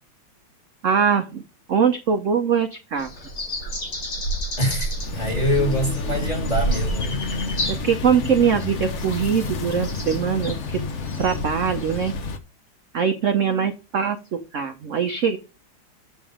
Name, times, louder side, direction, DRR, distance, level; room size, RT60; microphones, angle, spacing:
voice 1, 0.8-1.4 1.7-3.1 7.7-10.8 11.2-12.1 12.9-15.4, right 7 dB, 60° right, 0.8 m, -22 dB
sound 1, 3.0-12.1, right 1 dB, 75° left, 5.0 m, -31 dB
voice 2, 4.6-7.2, left 1 dB, 20° left, 2.2 m, -25 dB
sound 2, 4.9-12.4, left 4 dB, 50° left, 0.9 m, -30 dB
8.0 x 7.3 x 4.9 m
omnidirectional pair, 2.3 m